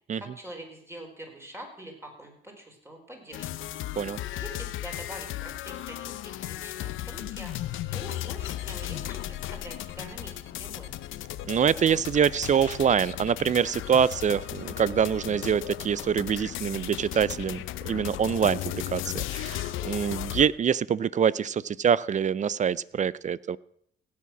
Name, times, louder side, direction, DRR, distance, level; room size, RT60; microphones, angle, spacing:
voice 1, 0.2-3.5 4.3-7.5 7.9-10.9, right 1 dB, 10° right, 2 dB, 4.6 m, -44 dB
sound 1, 3.3-20.5, left 14 dB, 85° left, 0.7 m, -36 dB
voice 2, 11.4-23.6, right 8 dB, 40° right, 21 dB, 0.5 m, -25 dB
16.5 x 8.5 x 6.0 m, 0.67 s
cardioid pair, 90°, 20 cm